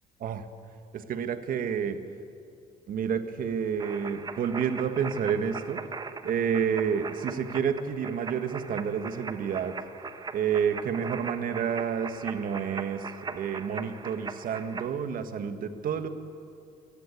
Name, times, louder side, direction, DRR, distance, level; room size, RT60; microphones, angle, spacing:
voice 1, 0.9-2.0 2.9-5.8 6.2-9.8 10.3-16.1, right 7 dB, 55° right, 9 dB, 1.5 m, -29 dB
sound 1, 3.8-14.9, right 4 dB, 25° right, 1.1 m, -40 dB
24.0 x 17.0 x 8.3 m, 2.5 s
cardioid pair, 110°, 17 cm